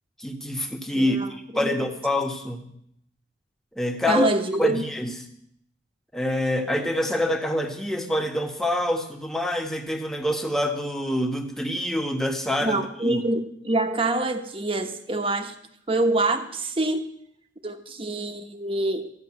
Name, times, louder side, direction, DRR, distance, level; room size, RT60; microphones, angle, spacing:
voice 1, 0.2-2.6 3.8-4.3 4.6-5.1 6.1-12.8 13.0-13.2, left 1 dB, ahead, 3 dB, 1.2 m, -26 dB
voice 2, 0.9-1.7 4.1-4.8 12.6-15.5 15.9-17.1 17.6-19.1, right 2 dB, 30° right, 7 dB, 1.1 m, -26 dB
13.5 x 6.8 x 9.7 m, 0.72 s
head